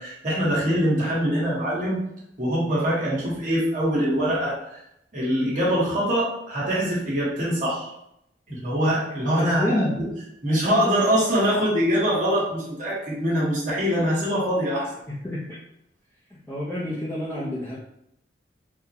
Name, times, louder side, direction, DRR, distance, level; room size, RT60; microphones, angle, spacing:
voice 1, 0.0-2.0 2.4-4.8 5.1-7.9 8.5-9.8 10.4-14.9, equal, 45° right, -6 dB, 1.3 m, -23 dB
voice 2, 9.3-10.0 15.2-15.4 16.5-17.8, left 1 dB, 10° left, -8 dB, 0.5 m, -28 dB
3.6 x 2.1 x 2.8 m, 0.79 s
head